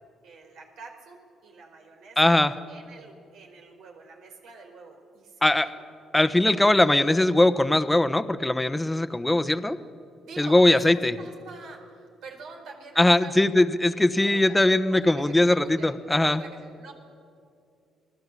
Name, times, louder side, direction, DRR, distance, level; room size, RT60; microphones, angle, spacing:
voice 1, 0.2-1.2 1.4-2.4 2.6-5.8 10.2-13.5 14.2-14.6 14.9-15.9 16.2-16.9, right 4 dB, 80° right, 2 dB, 4.5 m, -45 dB
voice 2, 2.2-2.5 5.4-5.6 6.1-9.8 10.4-11.2 13.0-16.4, left 1 dB, 10° left, 12 dB, 1.1 m, -20 dB
28.5 x 19.5 x 8.5 m, 2.4 s
cardioid pair, 90°, 0 cm